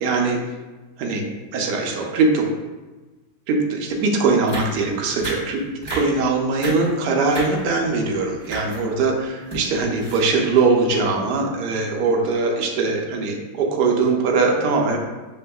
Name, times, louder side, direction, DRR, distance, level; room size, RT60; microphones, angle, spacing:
voice 1, 0.0-0.4 1.0-1.2 1.5-2.4 3.5-5.6 5.9-15.0, right 4 dB, 70° right, 1 dB, 1.1 m, -21 dB
sound 1, 3.9-4.0 4.5-4.8 5.2-5.5 5.8-6.2 6.5-6.9 7.2-7.9 8.4-8.8 9.2-10.6 11.1-11.2 11.5-11.7, right 1 dB, 10° right, 1.1 m, -32 dB
6.3 x 2.5 x 2.2 m, 1.2 s
omnidirectional pair, 1.9 m